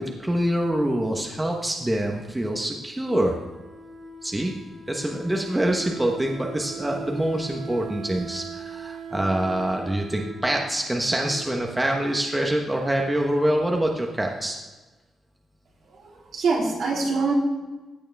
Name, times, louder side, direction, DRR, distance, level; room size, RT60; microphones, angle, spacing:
voice 1, 0.0-3.4 4.2-4.5 4.9-14.6, right 1 dB, 10° right, 1 dB, 1.1 m, -25 dB
Wind instrument woodwind instrument, 3.0-11.8, right 4 dB, 90° right, 4.0 m, -40 dB
voice 2, 15.9-17.3, right 4 dB, 65° right, -4 dB, 3.7 m, -25 dB
15.5 x 8.6 x 3.5 m, 1.2 s
cardioid pair, 120°, 0 cm